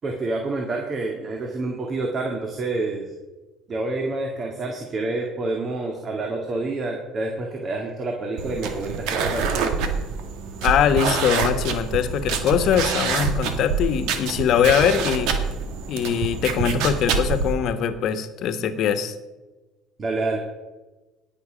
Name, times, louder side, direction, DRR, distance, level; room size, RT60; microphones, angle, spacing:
voice 1, 0.0-3.1 3.7-9.7 20.0-20.4, right 2 dB, 40° right, 1 dB, 2.1 m, -28 dB
sound 1, 8.4-17.5, right 5 dB, 75° right, 1.6 m, -26 dB
voice 2, 10.6-15.3 15.9-19.1, left 8 dB, 60° left, 9 dB, 1.3 m, -22 dB
18.0 x 6.6 x 5.2 m, 1.1 s
supercardioid pair, 85°, 0 cm